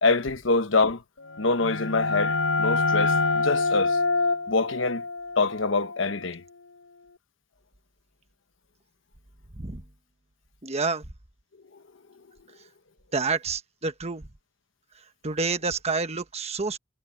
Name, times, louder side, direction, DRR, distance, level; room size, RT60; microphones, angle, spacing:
voice 1, 0.0-1.0 1.4-4.0 4.5-5.0 5.4-6.4, left 3 dB, 65° left, 1.1 m, -25 dB
sound 1, 1.3-6.8, left 3 dB, 85° left, 4.5 m, -26 dB
voice 2, 10.6-11.0 13.1-14.2 15.2-16.8, right 4 dB, 30° right, 1.2 m, -28 dB
head